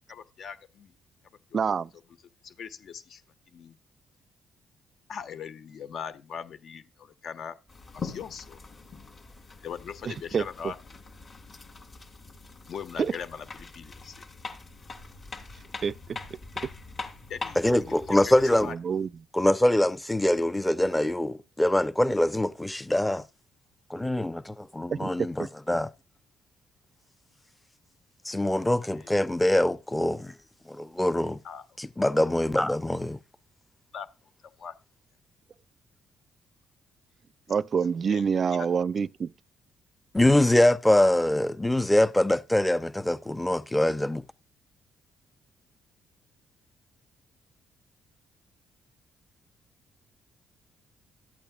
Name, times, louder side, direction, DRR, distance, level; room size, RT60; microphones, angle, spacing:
voice 1, 0.1-0.9 1.5-1.6 2.4-3.2 3.5-3.8 5.1-7.6 7.9-8.6 9.6-10.8 12.7-14.2 17.3-18.7 28.9-29.2 31.4-31.6 33.9-34.1 34.6-34.7 38.1-38.2 38.5-38.7, left 7 dB, 65° left, 1.4 m, -40 dB
voice 2, 1.5-1.9 10.3-10.4 15.8-16.2 18.7-19.1 24.9-25.1 37.5-39.3, right 6 dB, 45° right, 0.4 m, -26 dB
sound 1, 7.7-18.7, left 4 dB, 40° left, 2.6 m, -43 dB
voice 3, 17.6-18.7 19.3-23.2 23.9-25.9 28.3-30.3 30.7-31.4 31.8-33.2 40.1-44.2, left 1 dB, 10° left, 0.7 m, -24 dB
13.5 x 8.7 x 2.4 m
cardioid pair, 90°, 0 cm